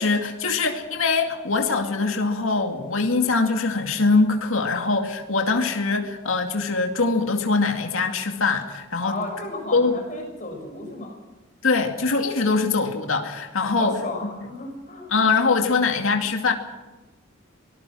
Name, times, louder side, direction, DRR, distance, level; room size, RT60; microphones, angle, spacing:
voice 1, 0.0-9.2 9.7-9.9 11.6-14.0 15.1-16.5, left 4 dB, 80° left, 4 dB, 2.3 m, -22 dB
voice 2, 9.0-11.2 13.6-15.1, left 2 dB, 35° left, 2 dB, 6.9 m, -34 dB
25.0 x 19.5 x 6.3 m, 1.1 s
head